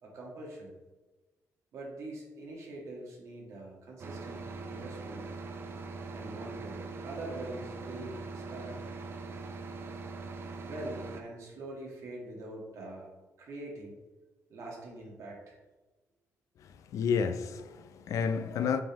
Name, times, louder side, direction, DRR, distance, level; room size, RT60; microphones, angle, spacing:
voice 1, 0.0-0.7 1.7-5.3 6.1-8.8 10.6-13.1 13.4-14.0 14.5-15.6, right 2 dB, 65° right, 1.7 m, -44 dB
sound 1, 4.0-11.2, right 3 dB, 45° right, 0.6 m, -42 dB
voice 2, 16.9-18.8, left 6 dB, 70° left, 0.4 m, -30 dB
8.6 x 3.7 x 3.0 m
cardioid pair, 155°, 6 cm